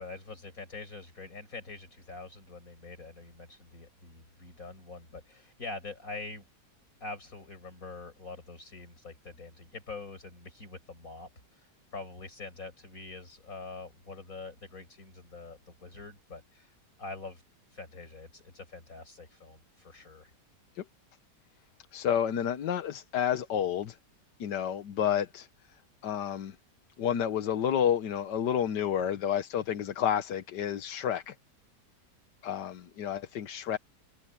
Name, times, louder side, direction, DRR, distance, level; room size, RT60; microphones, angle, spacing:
voice 1, 0.0-6.5 7.0-17.4 17.7-20.3, left 3 dB, 50° left, 6.2 m, -45 dB
voice 2, 21.9-24.0 24.4-25.5 26.0-26.6 27.0-31.3 32.4-33.8, left 9 dB, 80° left, 1.6 m, -30 dB
omnidirectional pair, 1.9 m